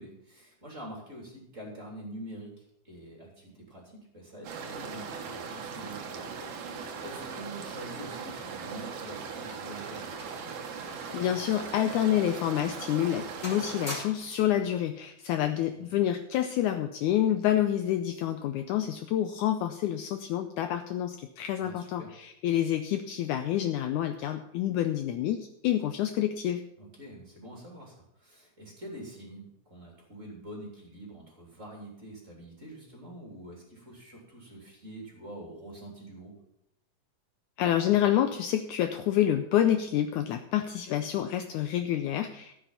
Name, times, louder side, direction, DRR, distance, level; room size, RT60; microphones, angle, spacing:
voice 1, 0.0-10.1 15.8-16.0 21.6-22.1 26.8-36.3, right 1 dB, 20° right, -2 dB, 3.1 m, -45 dB
sound 1, 4.4-13.9, right 5 dB, 60° right, 2.3 m, -39 dB
sound 2, 10.1-11.2 11.5-11.7 12.3-12.5 12.9-13.2 13.4-14.5 15.5-15.8, left 1 dB, 15° left, 3.1 m, -43 dB
voice 2, 11.1-26.6 37.6-42.6, left 11 dB, 85° left, 7 dB, 1.7 m, -28 dB
13.5 x 7.3 x 5.7 m, 0.78 s
omnidirectional pair, 4.2 m